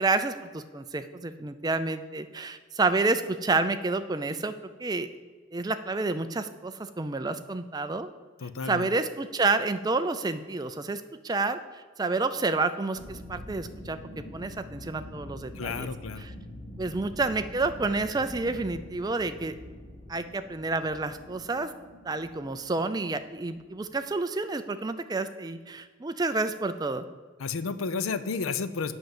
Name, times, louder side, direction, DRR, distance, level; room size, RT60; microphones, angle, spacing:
voice 1, 0.0-4.5 4.8-5.1 5.5-8.1 8.7-15.9 16.8-19.5 20.1-21.7 22.0-27.0, right 3 dB, 20° right, 10 dB, 0.4 m, -29 dB
voice 2, 8.4-8.9 15.5-16.3 27.4-29.0, left 5 dB, 80° left, 13 dB, 0.6 m, -32 dB
sound 1, 12.9-24.1, left 1 dB, 30° left, 1.1 m, -45 dB
7.9 x 5.7 x 7.7 m, 1.5 s
head